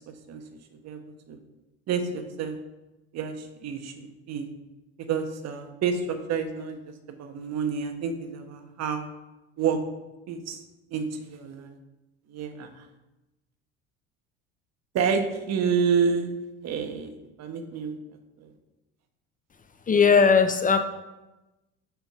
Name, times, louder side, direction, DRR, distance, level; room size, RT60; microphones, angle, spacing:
voice 1, 1.9-2.5 3.1-4.5 5.1-6.8 7.1-9.1 9.6-9.8 10.3-10.6 10.9-11.7 12.3-12.7 14.9-15.2 15.5-16.3 16.6-17.1 17.4-17.9 18.4-18.5, right 6 dB, 50° right, 7 dB, 1.3 m, -28 dB
voice 2, 19.9-20.8, left 5 dB, 25° left, 9 dB, 0.7 m, -18 dB
6.8 x 5.9 x 5.4 m, 1.0 s
hypercardioid pair, 75°, 33 cm